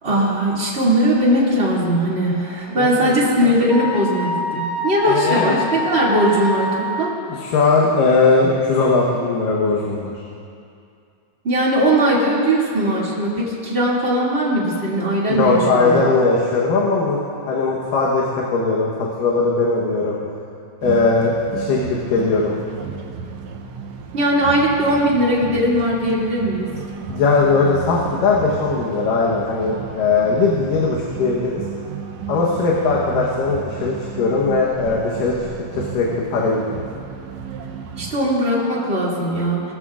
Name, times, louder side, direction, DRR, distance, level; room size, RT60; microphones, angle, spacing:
voice 1, 0.0-7.1 11.4-16.0 24.1-26.7 38.0-39.6, right 1 dB, 20° right, -6 dB, 2.2 m, -19 dB
voice 2, 2.8-3.5 5.1-5.6 7.3-10.1 15.4-17.2 17.5-20.2 20.8-22.6 27.1-31.6 32.3-35.4 35.7-36.8, left 3 dB, 85° left, -4 dB, 2.8 m, -19 dB
Wind instrument woodwind instrument, 3.7-7.2, left 1 dB, 20° left, 1.1 m, -26 dB
sound 1, 20.8-38.2, right 7 dB, 70° right, 1.7 m, -33 dB
20.0 x 14.0 x 2.5 m, 2.4 s
omnidirectional pair, 3.8 m